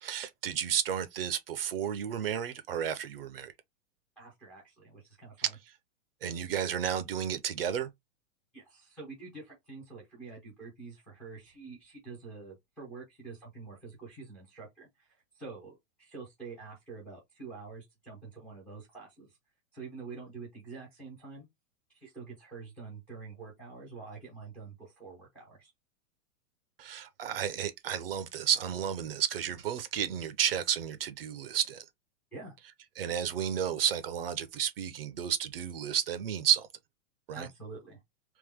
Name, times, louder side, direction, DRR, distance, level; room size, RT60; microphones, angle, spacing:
voice 1, 0.0-3.5 5.4-5.5 6.2-7.9 26.8-31.8 33.0-36.7 37.3-37.5, right 9 dB, 45° right, 0.6 m, -32 dB
voice 2, 4.2-5.6 8.5-15.1 15.3-19.3 19.7-21.5 21.9-25.7 32.3-32.5 37.3-38.0, right 4 dB, 5° left, 0.5 m, -46 dB
3.5 x 3.0 x 3.4 m
supercardioid pair, 175°, 39 cm